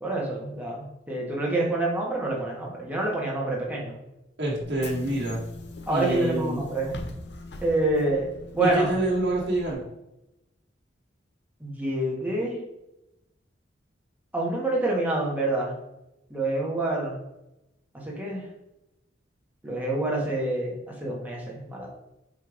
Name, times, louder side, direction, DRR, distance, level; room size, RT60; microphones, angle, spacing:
voice 1, 0.0-4.0 5.9-6.9 7.6-8.3 8.5-8.9 11.6-12.6 14.3-15.7 16.3-17.1 18.0-18.5 19.6-21.9, right 2 dB, 10° right, -3 dB, 1.7 m, -27 dB
voice 2, 4.4-5.4 5.9-6.6 8.6-9.8, right 2 dB, 65° right, -5 dB, 2.0 m, -27 dB
Bus / Engine, 4.6-9.7, left 2 dB, 65° left, 0.8 m, -41 dB
7.7 x 3.6 x 5.0 m, 0.90 s
head